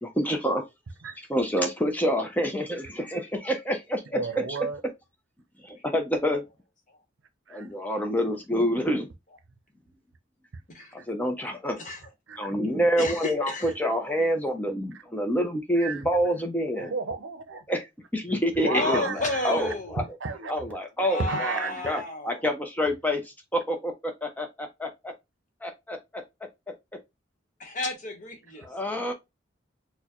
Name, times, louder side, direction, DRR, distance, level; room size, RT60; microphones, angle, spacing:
voice 1, 0.0-0.7 1.0-4.4 5.6-6.5 7.5-9.1 10.9-11.8 12.4-16.9 17.7-17.9 18.1-20.0 20.5-25.1 25.6-26.2 26.7-26.8 28.6-29.1, equal, 10° left, 0.5 m, -27 dB
voice 2, 4.1-4.8 7.5-7.7 11.0-11.1 12.3-12.5 15.8-16.0 16.8-17.6 18.3-18.4 18.6-19.7 20.2-20.5 21.2-22.0, right 4 dB, 75° right, 0.6 m, -33 dB
voice 3, 13.0-13.7 18.7-20.0 21.0-22.4 27.6-28.6, left 2 dB, 40° left, 1.0 m, -32 dB
4.3 x 2.1 x 2.9 m
head